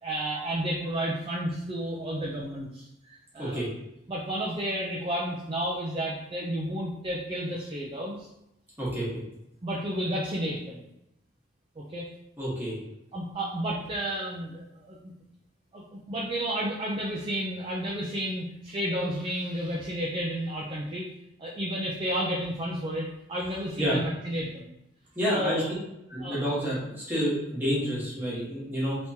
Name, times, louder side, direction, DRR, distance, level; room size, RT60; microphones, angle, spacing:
voice 1, 0.0-3.6 4.1-8.3 9.6-10.8 11.8-12.1 13.1-15.1 15.7-21.1 21.4-24.7 25.2-25.7 26.2-26.5, equal, 25° right, -4 dB, 0.4 m, -32 dB
voice 2, 12.4-12.8 23.8-24.0 25.1-25.6 26.1-29.0, equal, 10° right, -8 dB, 1.2 m, -29 dB
3.5 x 2.9 x 2.7 m, 0.85 s
head